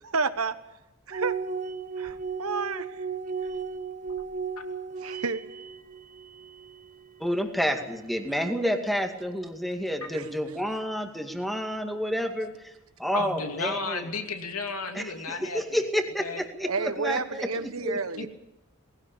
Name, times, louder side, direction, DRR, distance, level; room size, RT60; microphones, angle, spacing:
voice 1, 0.0-0.5 1.1-1.4 2.0-3.0 5.0-5.4 10.1-10.3 16.6-18.3, right 4 dB, 75° right, 11 dB, 1.3 m, -30 dB
sound 1, 1.1-7.5, right 5 dB, 35° right, 1.0 m, -35 dB
voice 2, 7.2-12.7 13.0-14.0 14.9-18.0, equal, ahead, 5 dB, 2.1 m, -30 dB
voice 3, 13.1-15.8 16.2-16.4 18.2-18.3, left 3 dB, 85° left, 5 dB, 2.6 m, -33 dB
19.5 x 17.0 x 8.8 m, 0.94 s
head